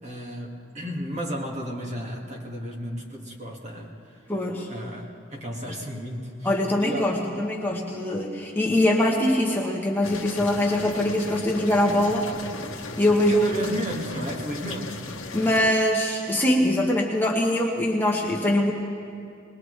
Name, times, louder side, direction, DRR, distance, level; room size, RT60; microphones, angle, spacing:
voice 1, 0.0-4.2 4.7-6.6 6.8-7.2 13.3-15.0, equal, 35° right, -1 dB, 1.9 m, -33 dB
voice 2, 4.3-4.7 6.4-12.3 13.0-13.5 15.3-18.7, left 1 dB, 10° left, -2 dB, 1.1 m, -23 dB
sound 1, 10.0-15.7, left 3 dB, 70° left, 1.4 m, -37 dB
21.5 x 20.5 x 3.3 m, 2.5 s
head